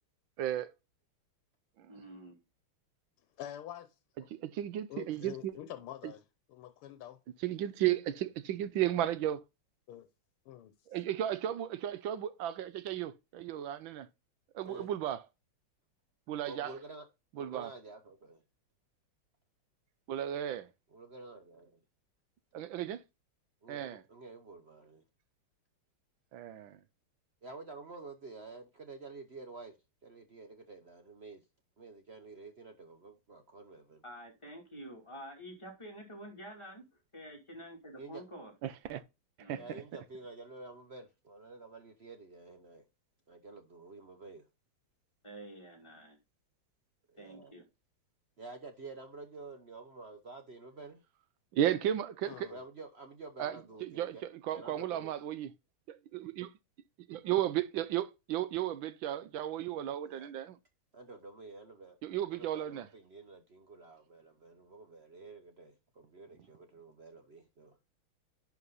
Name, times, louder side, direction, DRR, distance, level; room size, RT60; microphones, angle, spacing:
voice 1, 0.4-0.7 1.8-1.9 4.3-5.5 7.4-9.4 10.9-14.1 14.5-15.2 16.3-16.7 17.4-17.7 20.1-20.7 22.5-23.0 23.7-24.0 26.3-26.8 38.6-39.0 39.5-39.6 51.5-52.5 53.4-55.5 55.9-56.5 57.1-60.6 62.0-62.9, right 11 dB, 70° right, 1.4 m, -34 dB
voice 2, 1.9-2.4 34.0-36.8 37.1-38.5 39.4-39.8 45.2-46.2 47.2-47.6, right 1 dB, 15° left, 2.6 m, -48 dB
voice 3, 3.4-3.9 4.2-4.3 4.9-6.2 6.5-7.2 9.9-10.0 10.5-10.7 52.2-52.6, left 11 dB, 85° left, 1.7 m, -45 dB
voice 4, 16.4-17.1 17.3-18.4 20.9-21.8 23.6-25.0 27.4-29.8 30.0-31.4 31.8-34.0 38.0-38.2 39.6-42.9 43.3-44.5 47.1-47.6 48.4-51.0 52.5-54.2 54.5-55.2 60.0-60.3 60.9-62.0 62.3-67.8, right 3 dB, 55° right, 0.7 m, -49 dB
11.0 x 4.9 x 4.0 m
omnidirectional pair, 2.4 m